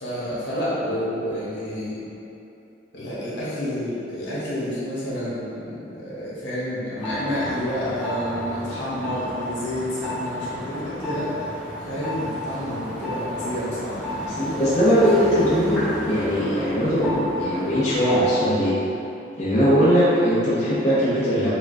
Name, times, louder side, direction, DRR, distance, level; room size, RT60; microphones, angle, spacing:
voice 1, 0.0-2.1 2.9-11.3 11.8-14.4 16.7-16.8 18.9-19.0, equal, 75° left, -9 dB, 1.3 m, -29 dB
sound 1, 7.0-18.3, equal, ahead, 1.2 m, -32 dB
voice 2, 14.2-15.8 16.1-18.8 19.4-21.5, equal, 40° left, -10 dB, 0.6 m, -20 dB
6.0 x 2.4 x 2.5 m, 2.8 s
head